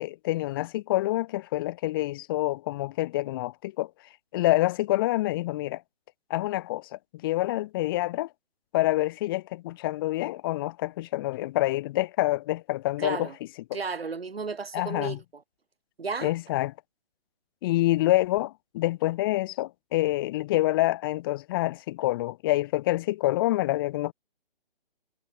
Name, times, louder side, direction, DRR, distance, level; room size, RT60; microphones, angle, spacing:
voice 1, 0.0-3.9 4.3-5.8 6.3-8.3 8.7-13.3 14.7-15.2 16.2-16.7 17.6-24.1, left 17 dB, 25° left, 2.0 m, -27 dB
voice 2, 13.0-13.3 13.7-15.4 16.0-16.3, right 4 dB, 75° right, 5.7 m, -33 dB
hypercardioid pair, 160°, 30 cm